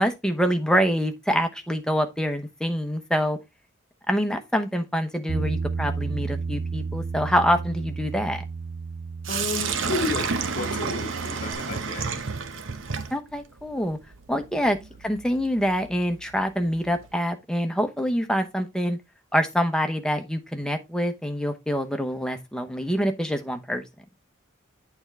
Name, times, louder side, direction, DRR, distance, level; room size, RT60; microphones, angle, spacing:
voice 1, 0.0-3.4 4.1-8.4 13.1-14.0 14.3-19.0 19.3-23.8, equal, 5° left, 0.9 m, -25 dB
Bass guitar, 5.3-11.5, right 4 dB, 55° right, 1.4 m, -32 dB
Sink (filling or washing), 9.2-17.2, right 5 dB, 75° right, 0.8 m, -32 dB
voice 2, 9.3-12.2 14.6-14.7, left 3 dB, 40° left, 1.1 m, -32 dB
8.8 x 4.4 x 3.5 m
head